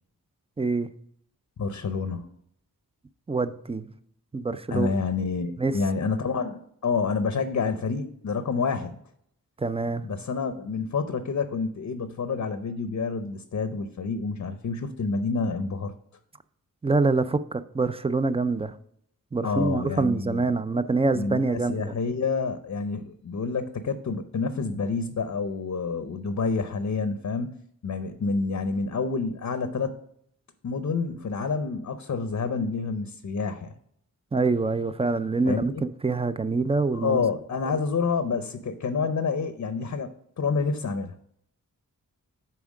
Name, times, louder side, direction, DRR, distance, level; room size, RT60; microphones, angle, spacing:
voice 1, 0.6-0.9 3.3-3.9 4.3-4.9 5.6-5.8 9.6-10.1 16.8-18.7 19.3-22.0 34.3-37.2, right 3 dB, 20° right, 13 dB, 0.3 m, -25 dB
voice 2, 1.6-2.3 4.7-9.0 10.0-15.9 19.4-20.6 21.1-27.6 27.8-30.0 30.6-33.7 35.4-35.8 36.9-40.1 40.4-41.1, left 4 dB, 50° left, 10 dB, 0.6 m, -28 dB
7.1 x 4.4 x 6.3 m, 0.69 s
wide cardioid pair, 110°, 35 cm